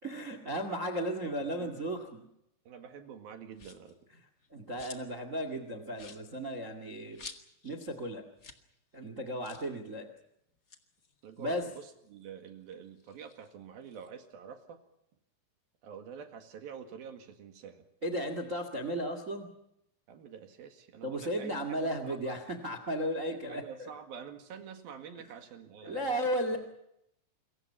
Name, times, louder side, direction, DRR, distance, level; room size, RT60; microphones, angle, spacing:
voice 1, 0.0-2.2 4.5-7.2 7.6-8.2 8.9-10.1 11.4-11.6 18.0-19.5 21.0-23.9 25.8-26.6, equal, 30° right, 8 dB, 1.5 m, -35 dB
voice 2, 2.7-4.0 11.2-14.8 15.8-17.9 20.1-22.4 23.3-26.2, right 7 dB, 60° right, 6 dB, 3.6 m, -47 dB
sound 1, 3.5-4.0 4.4-5.2 5.5-5.6 5.9-7.8 8.1-8.2 8.4-8.7 8.9-9.0 9.4-9.7 10.5-12.2 12.6-14.1, left 4 dB, 80° left, 0.7 m, -51 dB
27.5 x 23.0 x 5.8 m, 0.79 s
omnidirectional pair, 5.0 m